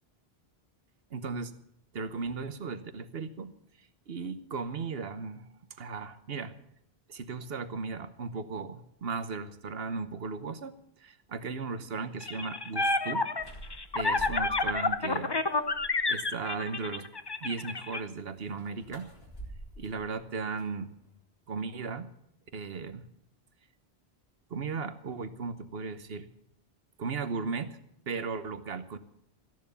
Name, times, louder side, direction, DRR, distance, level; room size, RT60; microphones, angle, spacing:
voice 1, 1.1-1.5 1.9-3.5 4.1-5.5 5.8-6.5 7.1-10.7 11.0-13.3 13.9-15.4 16.1-17.1 17.4-19.1 19.8-20.9 21.5-22.1 22.5-23.0 24.5-26.3 27.0-27.8 28.1-29.0, right 4 dB, 70° right, 12 dB, 1.2 m, -36 dB
sound 1, 12.2-18.0, left 3 dB, 25° left, 0.7 m, -29 dB
sound 2, 13.4-14.9 15.3-16.2 18.4-21.2, right 1 dB, 70° left, 4.2 m, -47 dB
14.5 x 11.0 x 7.0 m, 0.73 s
omnidirectional pair, 1.1 m